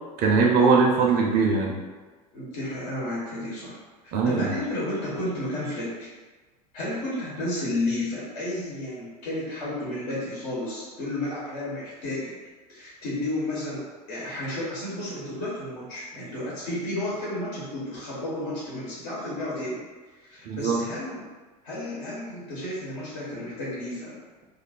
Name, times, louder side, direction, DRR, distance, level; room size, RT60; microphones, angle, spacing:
voice 1, 0.2-1.8 4.1-4.4 20.5-20.8, right 4 dB, 50° right, 1 dB, 0.6 m, -21 dB
voice 2, 2.3-3.8 4.0-6.1 6.7-12.3 12.7-19.8 20.1-21.3 21.6-24.1, left 1 dB, 60° left, -7 dB, 1.4 m, -32 dB
2.6 x 2.5 x 4.2 m, 1.3 s
hypercardioid pair, 80°, 20 cm